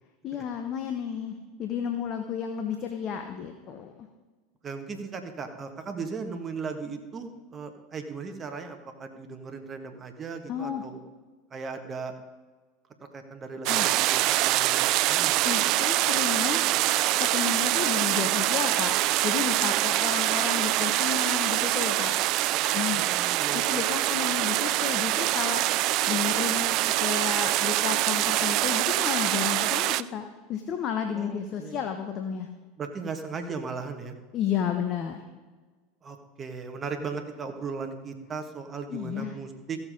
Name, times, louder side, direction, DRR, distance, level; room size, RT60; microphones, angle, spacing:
voice 1, 0.2-4.1 10.5-10.8 13.7-13.9 15.4-16.6 17.2-19.0 19.2-22.1 22.7-23.1 23.5-32.5 34.3-35.2 38.9-39.4, left 8 dB, 45° left, 6 dB, 1.1 m, -32 dB
voice 2, 4.6-11.0 11.5-12.1 13.1-15.4 22.9-24.1 31.1-31.8 32.8-34.2 36.0-39.8, right 5 dB, 30° right, 6 dB, 1.7 m, -37 dB
sound 1, 13.7-30.0, right 16 dB, 55° right, 0.3 m, -25 dB
15.0 x 7.2 x 5.2 m, 1.3 s
hypercardioid pair, 80°, 0 cm